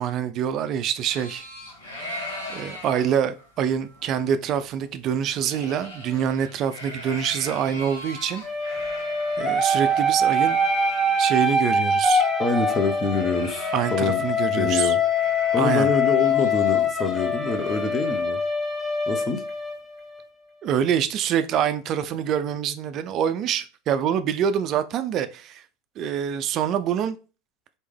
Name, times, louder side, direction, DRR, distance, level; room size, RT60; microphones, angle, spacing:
voice 1, 0.0-1.4 2.5-9.0 9.4-10.6 11.2-12.2 13.7-15.0 15.6-15.9 20.6-25.6 26.0-27.2, right 8 dB, 45° right, 0.4 m, -25 dB
sound 1, 1.1-11.5 11.9-12.0 12.2-14.4 14.6-14.8 15.0-18.2, left 1 dB, 85° left, 1.7 m, -40 dB
sound 2, 8.4-20.2, left 2 dB, ahead, 1.3 m, -23 dB
voice 2, 12.4-14.2 14.5-15.0 15.5-18.4 19.1-19.4, left 4 dB, 30° left, 0.9 m, -26 dB
4.2 x 3.4 x 3.3 m
hypercardioid pair, 90°, 0 cm